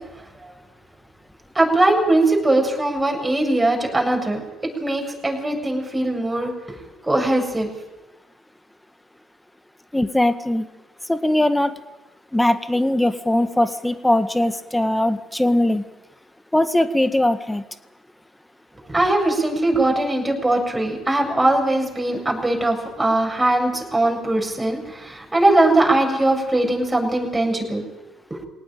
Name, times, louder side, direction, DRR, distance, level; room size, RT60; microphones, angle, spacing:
voice 1, 1.5-4.4 4.8-6.8 7.0-7.7 18.9-27.9 28.3-28.4, right 2 dB, 15° right, 1 dB, 7.6 m, -20 dB
voice 2, 9.9-10.7 11.1-11.7 12.3-15.8 16.5-17.6, left 1 dB, 10° left, 11 dB, 1.7 m, -20 dB
23.5 x 19.0 x 9.1 m, 1.0 s
figure-of-eight pair, 55°, 0 cm